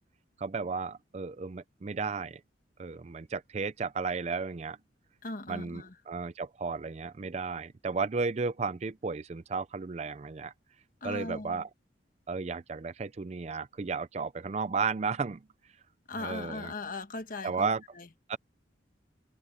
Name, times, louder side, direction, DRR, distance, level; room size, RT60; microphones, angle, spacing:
voice 1, 0.4-2.4 2.8-4.8 5.5-10.5 11.0-11.7 12.3-15.4 16.2-16.7 17.4-17.8 18.3-18.4, right 4 dB, 35° right, 0.4 m, -33 dB
voice 2, 5.2-5.9 11.0-11.6 16.1-17.7 18.0-18.1, left 3 dB, 45° left, 1.3 m, -38 dB
open air
head